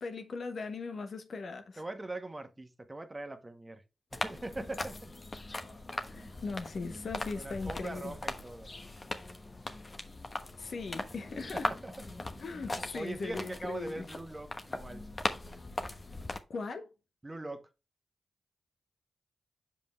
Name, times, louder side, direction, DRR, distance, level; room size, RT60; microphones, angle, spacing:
voice 1, 0.0-1.8 6.0-8.1 10.6-11.7 12.4-14.0 16.5-16.9, left 4 dB, 65° left, 1.1 m, -39 dB
voice 2, 1.8-3.8 4.1-5.1 6.1-6.4 7.3-8.7 11.4-11.9 12.9-15.0 17.2-17.7, right 2 dB, 25° right, 1.3 m, -42 dB
sound 1, 4.1-16.4, left 2 dB, 40° left, 1.1 m, -40 dB
7.2 x 5.2 x 3.1 m
supercardioid pair, 40°, 0 cm